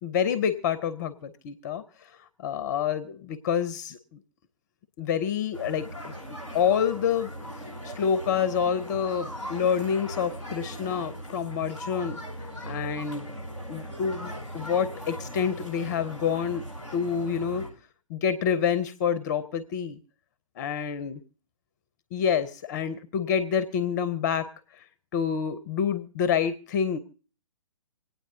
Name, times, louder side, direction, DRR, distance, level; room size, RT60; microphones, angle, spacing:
voice 1, 0.0-2.1 2.4-4.0 5.0-6.1 6.5-7.3 7.8-12.2 12.6-13.3 13.7-16.7 16.9-17.7 18.1-20.0 20.6-21.2 22.1-24.5 24.8-24.9 25.1-27.0, left 7 dB, 35° left, 13 dB, 0.6 m, -27 dB
sound 1, 5.5-17.7, equal, 75° right, 6.1 m, -39 dB
26.0 x 9.0 x 2.7 m, 0.40 s
figure-of-eight pair, 125°, 17 cm